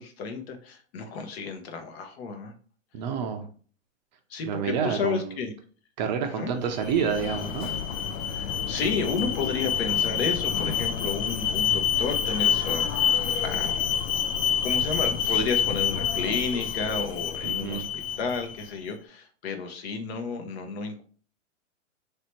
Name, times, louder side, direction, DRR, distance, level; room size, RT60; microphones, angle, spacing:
voice 1, 0.0-2.5 4.3-5.5 6.2-6.5 8.3-13.1 13.4-13.8 14.6-21.0, left 4 dB, 55° left, 6 dB, 0.9 m, -32 dB
voice 2, 2.9-3.5 4.4-5.3 6.0-7.7 17.4-17.9, right 7 dB, 35° right, 5 dB, 0.5 m, -28 dB
Alarm, 6.7-18.7, left 8 dB, 75° left, 0.6 m, -27 dB
3.3 x 2.8 x 4.4 m, 0.43 s
hypercardioid pair, 145°, 39 cm